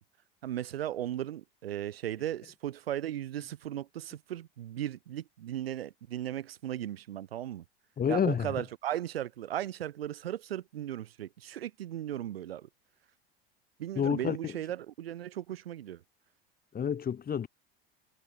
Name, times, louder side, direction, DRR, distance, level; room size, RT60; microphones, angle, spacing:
voice 1, 0.4-7.6 8.1-12.7 13.8-16.0, right 12 dB, 80° right, 5.6 m, -36 dB
voice 2, 8.0-8.5 14.0-14.5 16.7-17.5, left 8 dB, 30° left, 3.9 m, -29 dB
hypercardioid pair, 80°, 30 cm